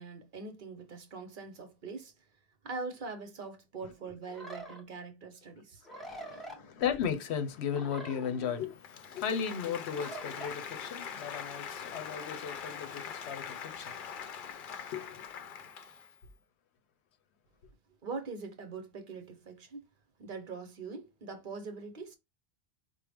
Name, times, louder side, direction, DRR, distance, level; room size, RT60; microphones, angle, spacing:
voice 1, 0.0-2.1 2.6-6.7 18.0-19.8 20.2-22.2, right 4 dB, 55° right, 0.9 m, -43 dB
sound 1, 4.3-4.8 5.8-6.6 7.7-8.7 9.9-10.5, right 1 dB, ahead, 0.5 m, -45 dB
voice 2, 5.9-15.5, left 7 dB, 90° left, 0.9 m, -36 dB
Applause, 8.8-16.2, left 7 dB, 60° left, 0.6 m, -43 dB
4.5 x 2.0 x 3.4 m
omnidirectional pair, 1.1 m